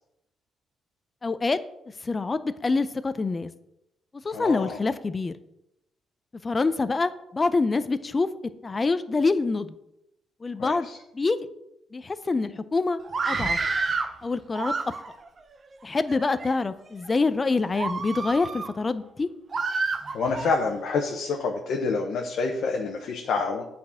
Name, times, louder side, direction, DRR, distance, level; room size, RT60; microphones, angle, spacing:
voice 1, 1.2-1.6 2.0-3.5 4.1-5.3 6.4-8.3 8.6-9.7 10.4-10.9 11.1-11.4 11.9-13.0 13.3-13.6 14.2-14.7 15.8-19.3, left 3 dB, 25° left, 13 dB, 0.5 m, -26 dB
voice 2, 4.3-4.8 10.6-11.0 20.1-23.6, left 4 dB, 70° left, 1 dB, 0.9 m, -27 dB
Screaming, 13.0-14.1 14.5-15.3 16.0-16.5 17.0-17.2 17.7-18.7 19.5-20.5, right 4 dB, 40° right, 0.7 m, -29 dB
8.6 x 4.3 x 5.7 m, 0.85 s
cardioid pair, 90°, 0 cm